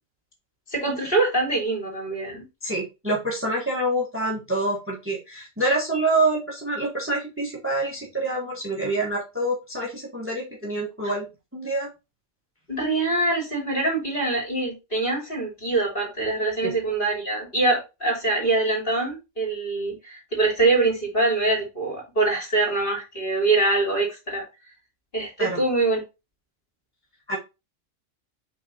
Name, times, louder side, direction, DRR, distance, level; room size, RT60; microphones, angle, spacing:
voice 1, 0.7-2.4 12.7-24.4 25.1-26.0, right 3 dB, 40° left, -2 dB, 3.2 m, -24 dB
voice 2, 2.6-11.3 11.5-11.9 16.6-16.7 25.4-25.6 27.3-27.4, right 2 dB, 10° right, -2 dB, 1.4 m, -26 dB
5.7 x 3.9 x 4.2 m, 0.26 s
omnidirectional pair, 1.3 m